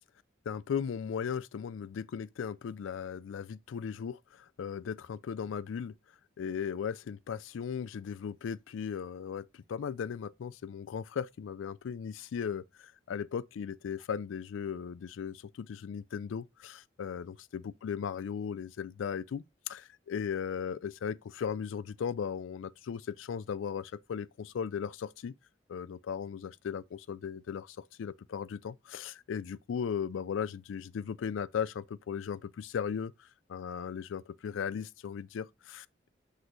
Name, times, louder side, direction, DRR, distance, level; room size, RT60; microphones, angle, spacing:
voice 1, 0.5-6.0 6.4-25.3 25.7-33.1 33.5-36.1, left 7 dB, 85° left, 0.3 m, -37 dB
7.9 x 3.2 x 3.9 m
head